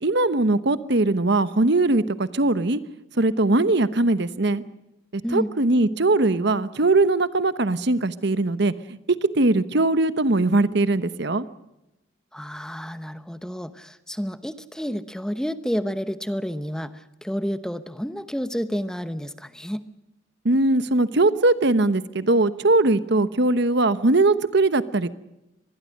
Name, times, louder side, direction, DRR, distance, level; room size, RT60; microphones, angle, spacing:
voice 1, 0.0-2.8 3.2-4.6 5.1-8.7 9.1-11.5 20.4-25.1, right 2 dB, 60° right, 14 dB, 1.0 m, -20 dB
voice 2, 12.3-19.9, equal, 5° left, 11 dB, 0.9 m, -30 dB
25.0 x 20.5 x 6.5 m, 0.92 s
head